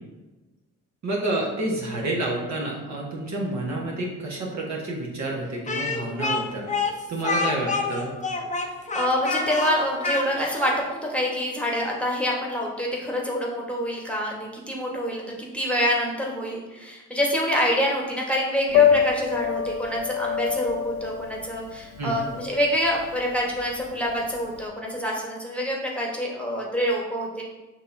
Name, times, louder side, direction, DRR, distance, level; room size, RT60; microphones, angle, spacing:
voice 1, 1.0-6.7 7.1-8.1 22.0-22.2, right 2 dB, 50° right, -3 dB, 1.2 m, -29 dB
Speech, 5.7-10.8, left 3 dB, 20° left, 0.7 m, -27 dB
voice 2, 8.9-27.4, equal, 5° left, -2 dB, 1.3 m, -26 dB
Piano, 18.7-24.6, left 8 dB, 80° left, 0.6 m, -26 dB
6.5 x 2.9 x 2.6 m, 1.1 s
hypercardioid pair, 45°, 36 cm